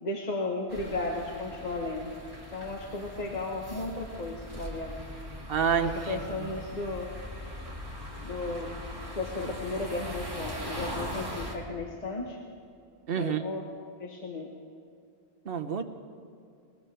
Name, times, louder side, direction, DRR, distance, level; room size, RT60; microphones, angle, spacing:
voice 1, 0.0-2.1 2.5-4.9 5.8-7.1 8.2-8.8 9.2-12.4 13.1-13.6 14.0-14.5, left 2 dB, 40° left, -1 dB, 1.3 m, -34 dB
sound 1, 0.7-11.5, equal, 20° right, 2.2 m, -40 dB
voice 2, 5.5-6.5 13.1-13.4 15.5-15.8, right 7 dB, 65° right, 7 dB, 1.1 m, -29 dB
21.0 x 20.5 x 3.4 m, 2.4 s
omnidirectional pair, 1.1 m